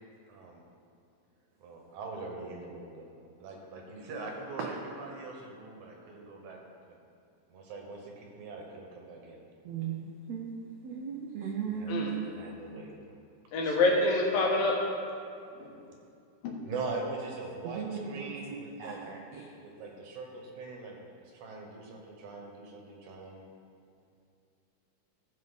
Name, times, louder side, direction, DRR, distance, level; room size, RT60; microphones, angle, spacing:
voice 1, 0.3-0.6 1.6-3.1 3.4-6.6 6.9-7.0 7.5-9.4 11.7-12.1 12.3-12.9 13.6-14.0 16.6-19.0 19.6-23.4, right 3 dB, 70° right, 0 dB, 2.3 m, -42 dB
voice 2, 9.7-10.5 10.8-12.3 17.6-19.4, right 7 dB, 90° right, 0 dB, 1.4 m, -37 dB
voice 3, 13.5-14.7 15.6-15.7 16.4-16.5, left 2 dB, 90° left, -2 dB, 3.1 m, -26 dB
15.0 x 5.4 x 4.1 m, 2.5 s
omnidirectional pair, 3.9 m